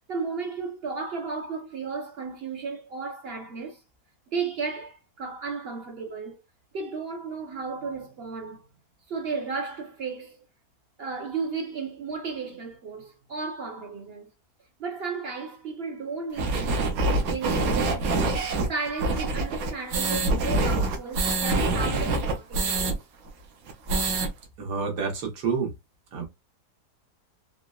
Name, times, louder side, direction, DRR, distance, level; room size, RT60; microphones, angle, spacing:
voice 1, 0.1-3.8 4.3-6.4 6.7-8.7 9.1-10.4 11.0-14.3 14.8-17.0 17.3-23.0, right 4 dB, 50° right, 0.8 m, -34 dB
sound 1, 16.4-22.9 23.3-23.4 23.7-24.3, right 2 dB, 65° right, 1.1 m, -25 dB
voice 2, 24.6-25.7 26.1-26.3, right 5 dB, 90° right, 1.5 m, -28 dB
3.9 x 2.1 x 2.3 m
omnidirectional pair, 1.7 m